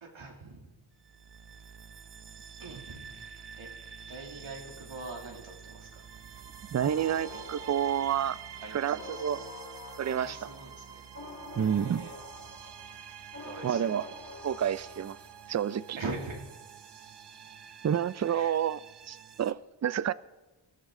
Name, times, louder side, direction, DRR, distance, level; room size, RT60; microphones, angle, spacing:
voice 1, 0.0-0.8 2.6-3.7 4.1-6.0 7.3-7.4 8.6-9.4 10.0-11.0 11.5-12.1 13.4-14.0 14.6-14.9 15.9-16.5 18.3-18.5, right 3 dB, 90° right, 2.6 m, -43 dB
sound 1, 0.9-19.5, right 7 dB, 60° right, 0.8 m, -48 dB
voice 2, 6.7-8.4 8.7-9.4 10.0-10.4 11.6-12.1 13.6-14.1 14.4-15.2 15.5-16.0 17.8-18.8 19.1-20.1, right 9 dB, 40° right, 0.5 m, -29 dB
sound 2, 6.8-15.5, left 1 dB, 45° left, 3.8 m, -47 dB
24.5 x 13.0 x 3.7 m
wide cardioid pair, 80°, 45 cm